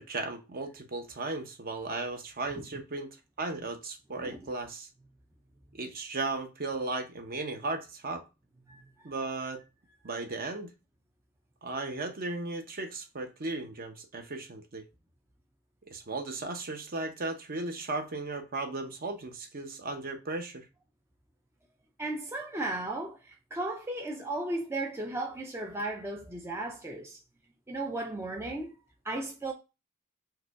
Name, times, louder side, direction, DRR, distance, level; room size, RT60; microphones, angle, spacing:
voice 1, 0.0-3.1 3.4-4.9 5.7-8.2 9.0-9.6 10.0-10.7 11.6-14.8 15.9-20.6, right 3 dB, 45° right, 0.8 m, -36 dB
voice 2, 22.0-27.2 27.7-28.7 29.0-29.5, right 2 dB, 10° right, 0.4 m, -35 dB
4.7 x 2.3 x 4.6 m
head